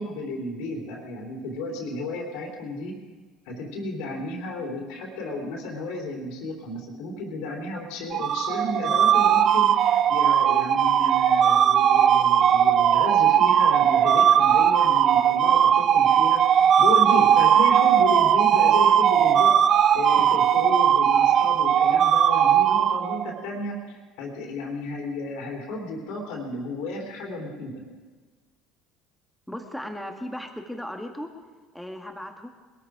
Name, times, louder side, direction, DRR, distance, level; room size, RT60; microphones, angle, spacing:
voice 1, 0.0-3.0 3.5-19.6 19.9-27.8, left 2 dB, 75° left, 0 dB, 3.4 m, -33 dB
sound 1, 8.1-23.4, right 9 dB, 50° right, 0.5 m, -19 dB
voice 2, 29.5-31.3 31.7-32.5, equal, 5° left, 5 dB, 2.0 m, -36 dB
20.5 x 13.5 x 5.0 m, 1.4 s
hypercardioid pair, 75°, 0 cm